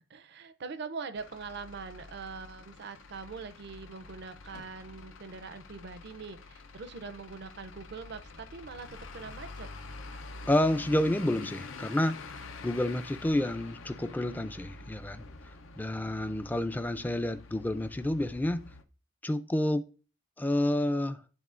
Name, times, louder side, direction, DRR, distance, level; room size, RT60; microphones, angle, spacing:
voice 1, 0.0-9.7, right 4 dB, 60° right, 12 dB, 0.5 m, -43 dB
Truck / Idling, 1.1-18.8, left 3 dB, 90° left, 0.6 m, -47 dB
voice 2, 10.5-12.2 12.6-15.2 15.8-18.6 19.2-19.8 20.4-21.2, left 1 dB, 10° left, 11 dB, 0.3 m, -29 dB
10.5 x 3.6 x 2.5 m, 0.36 s
head